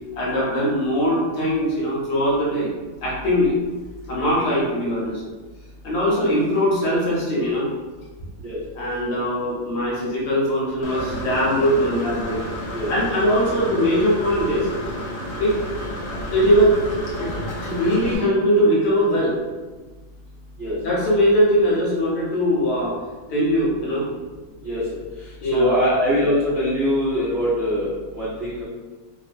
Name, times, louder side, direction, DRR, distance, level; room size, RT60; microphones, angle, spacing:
voice 1, 0.1-2.7 3.0-3.6 4.1-5.2 5.8-7.7 8.7-12.5 12.9-14.7 15.4-15.6 16.3-17.3 17.6-19.4 20.8-23.0 23.3-24.1 25.4-25.8, equal, 65° left, -6 dB, 1.3 m, -21 dB
Engine / Mechanisms, 10.8-18.2, equal, 90° left, 0.9 m, -31 dB
voice 2, 25.5-28.6, equal, 70° right, -12 dB, 0.5 m, -22 dB
3.4 x 2.1 x 2.4 m, 1.3 s
omnidirectional pair, 2.3 m